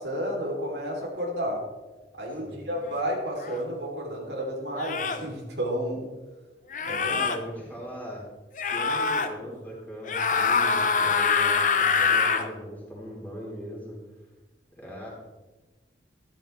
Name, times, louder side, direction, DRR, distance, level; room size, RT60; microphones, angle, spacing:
voice 1, 0.0-1.6 2.2-6.1 6.8-7.2, equal, 75° right, -1 dB, 3.5 m, -31 dB
sound 1, 3.4-3.6 4.8-5.3 6.7-7.4 8.6-9.3 10.0-12.5, left 5 dB, 45° left, 0.9 m, -24 dB
voice 2, 7.0-8.2 8.6-14.0 14.8-15.1, equal, 10° left, -5 dB, 4.1 m, -39 dB
13.5 x 13.0 x 3.5 m, 1.2 s
head